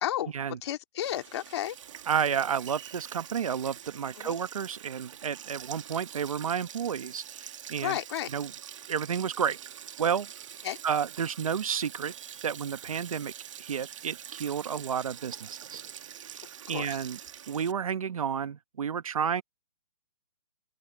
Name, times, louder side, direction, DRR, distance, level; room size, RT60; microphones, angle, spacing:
voice 1, 0.0-0.3 0.6-1.8 4.2-4.3 7.8-8.3 10.6-10.8 16.7-17.0, left 12 dB, 50° left, 2.8 m, -32 dB
Sink (filling or washing), 1.0-17.7, right 9 dB, 65° right, 2.2 m, -45 dB
voice 2, 2.1-8.0 8.3-8.5 8.9-9.6 10.0-10.3 10.8-12.1 12.4-13.3 13.6-15.8 16.2-16.4 16.7-17.2 17.5-19.4, right 7 dB, 80° right, 1.3 m, -31 dB
hypercardioid pair, 150°, 17 cm